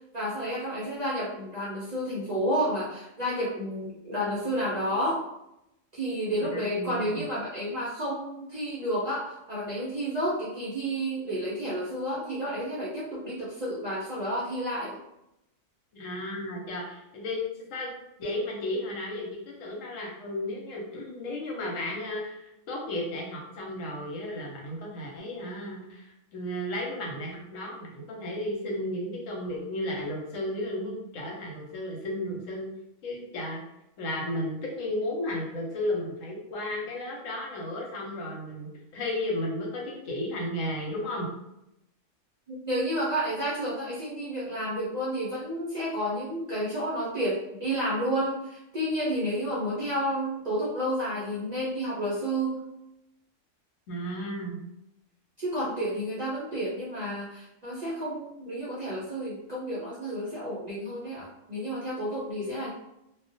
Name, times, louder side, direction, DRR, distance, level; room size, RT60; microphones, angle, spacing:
voice 1, 0.1-5.2 5.9-15.0 42.5-52.6 55.4-62.7, equal, 55° right, -8 dB, 0.4 m, -31 dB
voice 2, 6.5-7.2 15.9-17.4 17.7-17.9 18.2-32.7 33.0-33.6 34.0-41.3 53.9-54.6, left 1 dB, 80° left, -1 dB, 1.1 m, -34 dB
2.3 x 2.1 x 2.6 m, 0.86 s
omnidirectional pair, 1.3 m